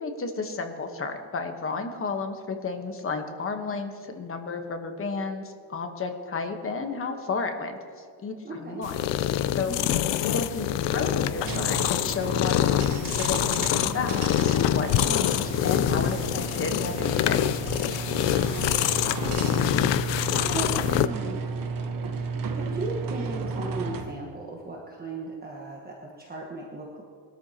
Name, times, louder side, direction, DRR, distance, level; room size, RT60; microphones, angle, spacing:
voice 1, 0.0-8.9 9.5-9.7 10.3-12.8 13.1-17.5, left 4 dB, 30° left, 5 dB, 1.1 m, -32 dB
voice 2, 8.4-8.8 9.7-10.0 13.7-14.2 18.2-18.9 19.2-19.8 20.2-21.4 22.3-27.0, right 2 dB, 20° right, -2 dB, 1.3 m, -37 dB
sound 1, 8.8-21.1, left 12 dB, 70° left, 0.6 m, -25 dB
sound 2, 11.4-24.2, right 4 dB, 45° right, 1.1 m, -34 dB
sound 3, 12.8-13.4 14.2-14.8 15.7-16.2 16.6-16.7 17.6-18.3 19.1-19.8, left 2 dB, 90° left, 2.9 m, -39 dB
21.5 x 13.0 x 2.9 m, 2.2 s
cardioid pair, 160°, 46 cm